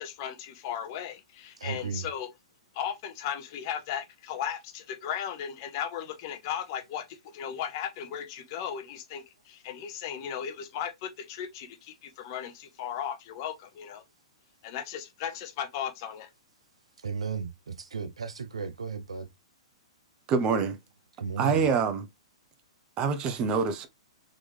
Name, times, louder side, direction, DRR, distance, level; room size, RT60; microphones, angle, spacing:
voice 1, 0.0-2.3 2.7-14.0 14.6-16.3, left 9 dB, 45° left, 1.0 m, -36 dB
voice 2, 1.6-2.1 17.0-19.3 21.2-21.7, right 6 dB, 75° right, 0.7 m, -35 dB
voice 3, 20.3-20.8 21.4-22.1 23.0-23.9, right 5 dB, 30° right, 0.8 m, -25 dB
3.8 x 3.1 x 3.3 m
figure-of-eight pair, 115°, 3 cm